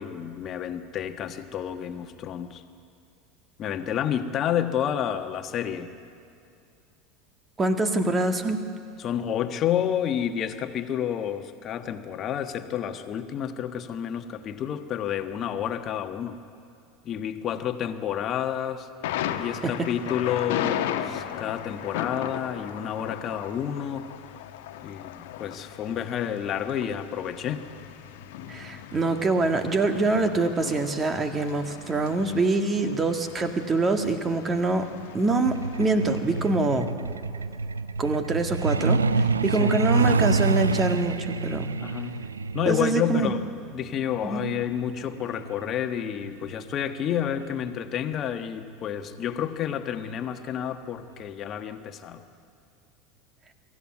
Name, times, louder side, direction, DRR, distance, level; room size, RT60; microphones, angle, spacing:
voice 1, 0.0-2.6 3.6-5.9 9.0-16.4 17.0-24.1 24.8-27.6 39.6-39.8 41.8-42.2 42.5-43.4 43.7-52.2, left 9 dB, 40° left, 7 dB, 1.4 m, -30 dB
voice 2, 7.6-8.6 19.6-19.7 28.5-36.9 38.0-41.7 42.7-43.3 44.2-44.4, right 3 dB, 25° right, 6 dB, 1.9 m, -25 dB
Thunder, 19.0-36.5, left 10 dB, 60° left, 1.2 m, -37 dB
Truck, 35.5-47.8 49.0-49.2 49.5-49.7 50.1-50.4 50.7-50.8 51.3-51.4, right 4 dB, 80° right, 0.5 m, -28 dB
24.0 x 14.0 x 9.7 m, 2.5 s
figure-of-eight pair, 75°, 0 cm